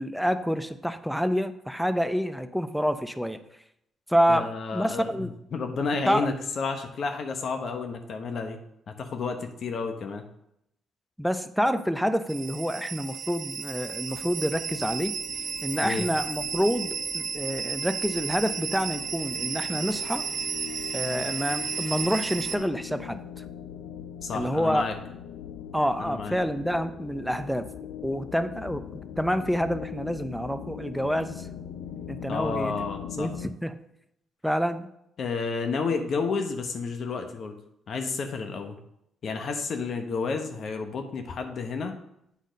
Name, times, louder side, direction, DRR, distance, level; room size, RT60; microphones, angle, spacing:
voice 1, 0.0-3.4 4.1-5.3 6.1-6.3 11.2-15.2 15.6-20.3 20.9-23.4 24.3-24.8 25.7-27.7 28.0-28.9 29.2-31.5 32.1-32.7 33.2-33.8 34.4-34.9, equal, ahead, 11 dB, 0.6 m, -27 dB
voice 2, 4.3-8.6 8.9-10.2 15.8-16.1 24.2-24.9 26.0-26.3 32.3-33.3 35.2-37.6 37.9-38.8 39.2-41.9, left 4 dB, 55° left, 6 dB, 1.0 m, -31 dB
sound 1, 12.3-22.6, right 6 dB, 60° right, 0.7 m, -33 dB
sound 2, 14.1-33.5, left 9 dB, 85° left, 0.5 m, -41 dB
8.3 x 4.1 x 5.1 m, 0.78 s
cardioid pair, 90°, 0 cm